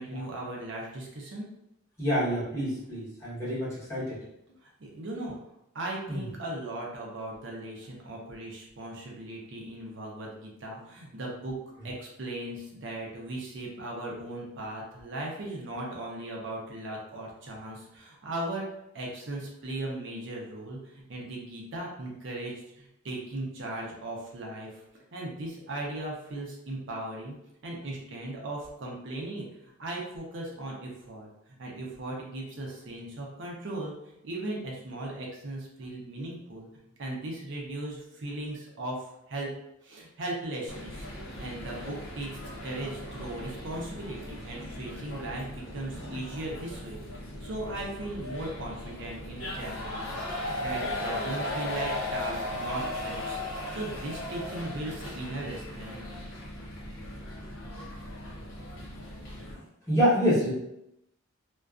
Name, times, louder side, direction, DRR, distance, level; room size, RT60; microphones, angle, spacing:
voice 1, 0.0-1.5 4.8-5.4 5.7-11.6 11.8-18.7 18.9-24.8 25.1-27.4 27.6-29.5 29.8-31.3 31.6-33.9 34.2-36.7 37.0-39.5 39.8-42.3 42.6-47.0 47.4-56.0, right 1 dB, 60° right, -2 dB, 0.6 m, -37 dB
voice 2, 2.0-4.2 6.1-6.3 11.8-11.9 45.9-46.2 59.5-60.5, equal, 15° left, -9 dB, 1.0 m, -28 dB
sound 1, 40.7-59.5, left 1 dB, 75° left, 0.7 m, -37 dB
2.5 x 2.2 x 2.3 m, 0.82 s
head